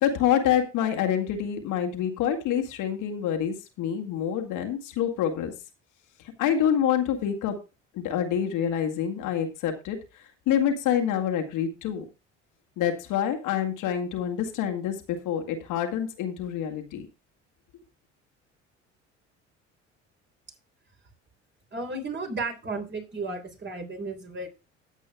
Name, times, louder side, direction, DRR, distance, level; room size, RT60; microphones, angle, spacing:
voice 1, 0.0-5.5 6.2-7.6 7.9-12.0 12.8-17.1, left 9 dB, 60° left, 4 dB, 2.0 m, -27 dB
voice 2, 21.7-24.5, right 3 dB, 30° right, 5 dB, 3.4 m, -34 dB
18.0 x 8.3 x 2.3 m, 0.28 s
figure-of-eight pair, 55°, 36 cm